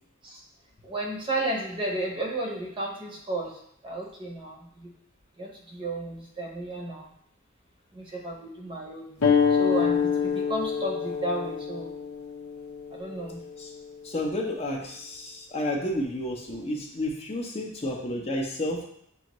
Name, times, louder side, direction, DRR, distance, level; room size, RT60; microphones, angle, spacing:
voice 1, 0.8-4.9 5.4-7.1 7.9-9.1 9.5-11.9 12.9-13.4, right 1 dB, 25° right, 0 dB, 0.7 m, -33 dB
sound 1, 9.2-14.3, left 6 dB, 75° left, 0.7 m, -27 dB
voice 2, 14.0-18.8, left 1 dB, 30° left, 0 dB, 0.6 m, -31 dB
6.9 x 2.6 x 3.0 m, 0.69 s
head